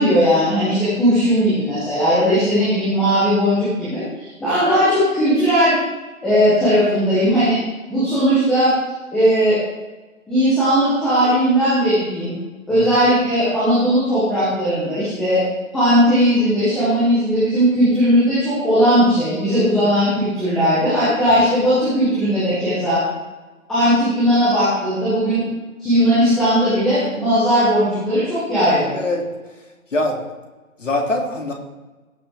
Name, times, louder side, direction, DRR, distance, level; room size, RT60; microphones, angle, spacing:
voice 1, 0.0-5.7 6.2-7.6 7.9-8.7 9.1-9.6 10.3-12.3 12.7-15.4 15.7-23.0 23.7-25.4 25.8-29.0, equal, ahead, -13 dB, 0.8 m, -17 dB
voice 2, 28.9-29.3 29.9-30.2 30.8-31.5, left 2 dB, 60° left, 1 dB, 2.8 m, -22 dB
18.0 x 6.8 x 3.5 m, 1.2 s
figure-of-eight pair, 145°, 42 cm